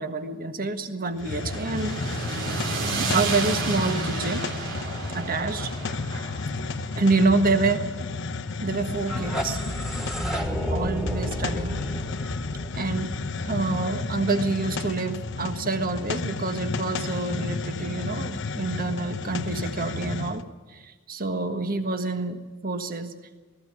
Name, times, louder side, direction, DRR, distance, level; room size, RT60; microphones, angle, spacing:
voice 1, 0.0-2.0 3.0-4.4 5.1-5.7 6.9-7.9 8.6-9.6 10.7-11.8 12.7-13.2 13.4-20.4 20.7-23.1, right 3 dB, 45° right, 8 dB, 1.5 m, -27 dB
Hiss, 1.1-20.4, left 3 dB, 65° left, 0.9 m, -32 dB
sound 1, 1.2-9.4, right 3 dB, 65° right, 3.0 m, -32 dB
sound 2, 8.9-13.8, equal, ahead, 2.1 m, -31 dB
19.0 x 14.5 x 9.8 m, 1.3 s
head